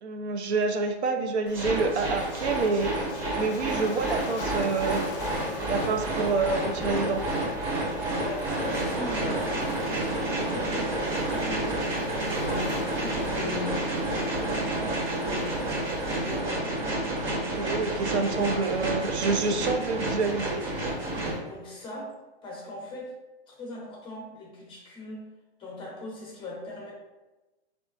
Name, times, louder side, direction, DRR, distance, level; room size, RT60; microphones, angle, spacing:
voice 1, 0.0-2.9 3.4-5.0 5.7-7.2 17.3-21.0, right 4 dB, 75° right, 5 dB, 0.5 m, -28 dB
Waves surf, 1.5-16.4, left 5 dB, 55° left, 0.4 m, -43 dB
sound 1, 1.5-21.4, right 1 dB, 60° right, 1.2 m, -30 dB
voice 2, 8.1-11.8 12.4-15.7 16.1-16.8 21.5-22.1 22.4-23.1 23.5-25.2 25.6-26.9, left 2 dB, 15° left, -3 dB, 0.6 m, -39 dB
3.6 x 2.4 x 2.4 m, 1.1 s
hypercardioid pair, 140°, 33 cm